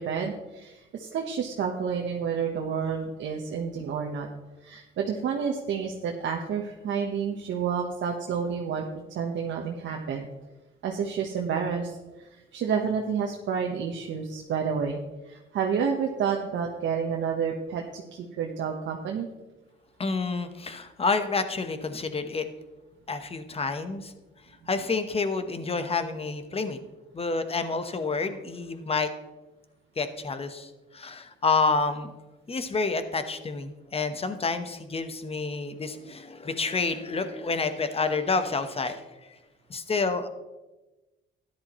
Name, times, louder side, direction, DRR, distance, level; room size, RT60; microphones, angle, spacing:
voice 1, 0.0-4.3 4.6-8.9 9.1-10.3 10.8-15.0 15.3-19.3, right 6 dB, 70° right, 1 dB, 1.1 m, -30 dB
voice 2, 20.0-22.5 23.1-24.1 24.7-26.8 27.1-29.1 30.0-32.1 32.5-39.1 39.7-40.3, left 4 dB, 30° left, 9 dB, 1.1 m, -29 dB
13.0 x 10.5 x 3.1 m, 1.1 s
cardioid pair, 90°, 20 cm